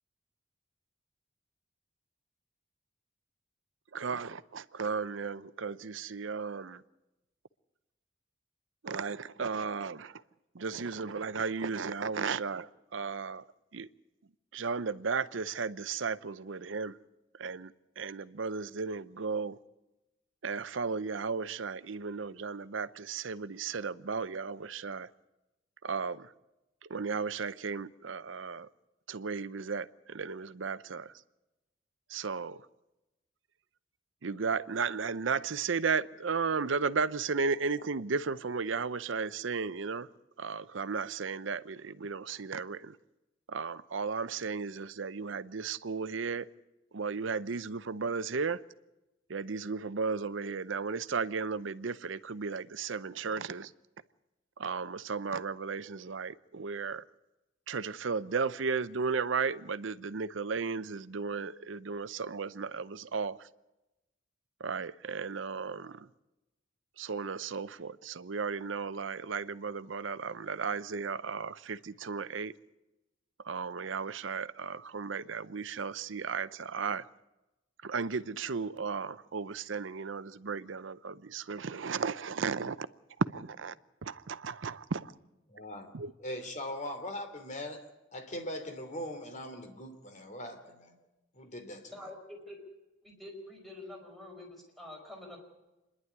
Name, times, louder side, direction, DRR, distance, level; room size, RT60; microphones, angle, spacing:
voice 1, 3.9-6.8 8.8-10.2 10.5-13.4 13.7-13.9 14.5-17.0 17.3-19.6 20.4-25.1 25.8-26.3 26.8-28.7 29.1-31.1 32.1-32.7 34.2-40.1 40.4-43.0 43.5-46.5 46.9-48.6 49.3-53.7 54.6-57.0 57.7-63.5 64.6-66.1 67.0-72.5 73.4-77.1 77.8-82.9 83.2-83.7 84.0-85.1 85.9-86.1, right 5 dB, 75° right, 0.7 m, -35 dB
voice 2, 85.5-85.9 86.2-87.8 88.1-91.0 91.3-92.0, left 1 dB, 40° left, 2.9 m, -40 dB
voice 3, 91.9-92.6 93.0-95.4, left 1 dB, ahead, 5.0 m, -47 dB
27.0 x 11.0 x 9.6 m
head